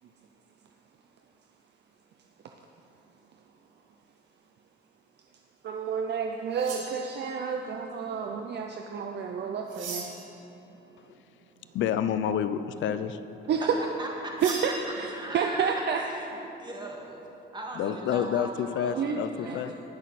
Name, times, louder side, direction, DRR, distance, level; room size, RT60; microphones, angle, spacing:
voice 1, 5.6-10.0 13.5-13.7 14.4-16.0 19.0-19.2 19.4-19.7, right 6 dB, 60° right, 3 dB, 0.7 m, -30 dB
sound 1, 6.5-7.5 9.7-10.3 14.4-14.8, right 3 dB, 85° right, 2.9 m, -39 dB
voice 2, 11.7-13.2 17.8-19.7, left 8 dB, 75° left, 11 dB, 0.6 m, -29 dB
voice 3, 14.0-14.3 15.1-16.3 16.6-17.3 17.5-19.6, right 1 dB, 20° right, -1 dB, 2.1 m, -39 dB
19.0 x 6.4 x 4.2 m, 2.9 s
cardioid pair, 90°, 20 cm